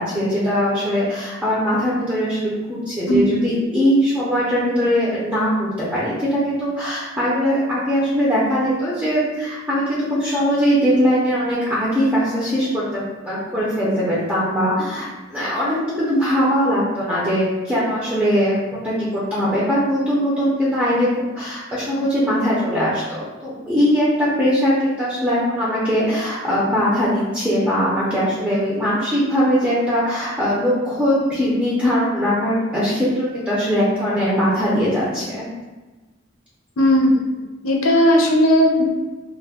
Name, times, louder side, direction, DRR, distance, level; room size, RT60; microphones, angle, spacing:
voice 1, 0.0-21.1 21.4-35.4, equal, 10° right, -9 dB, 0.5 m, -20 dB
voice 2, 3.1-3.4 36.8-37.1 37.6-38.8, equal, 85° left, 0 dB, 0.5 m, -16 dB
2.3 x 2.1 x 3.4 m, 1.2 s
head